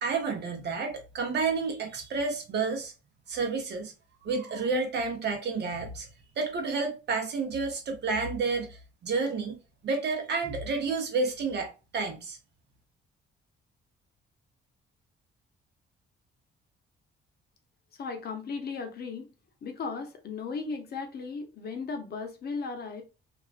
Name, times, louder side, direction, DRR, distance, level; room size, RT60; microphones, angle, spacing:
voice 1, 0.0-2.9 3.3-3.9 4.2-6.1 6.4-9.6 9.8-12.4, right 4 dB, 60° right, 0.7 m, -30 dB
voice 2, 18.0-19.3 19.6-23.0, left 4 dB, 50° left, 0.6 m, -36 dB
2.3 x 2.2 x 2.4 m
cardioid pair, 90°, 20 cm